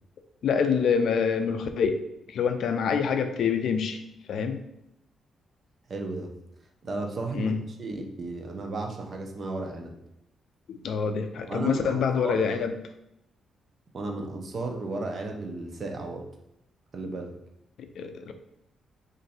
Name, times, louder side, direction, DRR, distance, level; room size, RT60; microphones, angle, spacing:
voice 1, 0.4-2.0 2.3-4.0 4.3-4.6 7.3-7.6 10.7-12.7 17.8-18.3, left 6 dB, 65° left, 7 dB, 0.3 m, -26 dB
voice 2, 5.9-6.3 6.8-7.5 7.8-9.9 11.5-12.4 13.9-16.2 16.9-17.3, right 2 dB, 40° right, 2 dB, 0.6 m, -34 dB
3.1 x 2.5 x 4.2 m, 0.82 s
cardioid pair, 135°, 0 cm